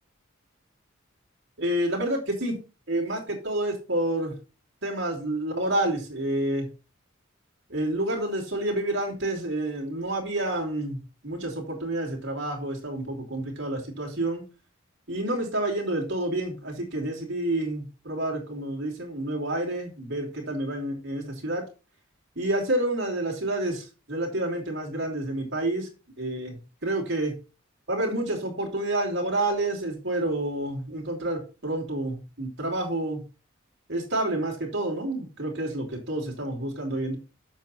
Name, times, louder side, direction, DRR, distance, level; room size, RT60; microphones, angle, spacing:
voice 1, 1.6-2.5 2.9-4.3 4.8-6.7 7.7-14.4 15.1-21.7 22.4-25.9 26.2-27.3 27.9-33.2 33.9-37.2, right 1 dB, 60° right, 0 dB, 2.7 m, -29 dB
7.4 x 6.8 x 4.1 m, 0.31 s
head